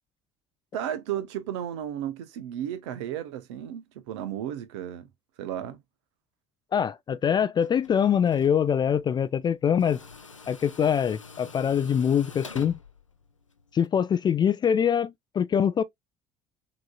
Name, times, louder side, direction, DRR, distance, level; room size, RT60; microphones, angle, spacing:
voice 1, 0.7-5.1 5.4-5.8, right 10 dB, 65° right, 0.9 m, -34 dB
voice 2, 6.7-10.0 10.5-12.8 13.7-15.8, left 8 dB, 30° left, 0.4 m, -24 dB
Tools, 7.6-13.9, left 4 dB, 90° left, 0.5 m, -47 dB
6.1 x 2.9 x 2.3 m
figure-of-eight pair, 60°, 16 cm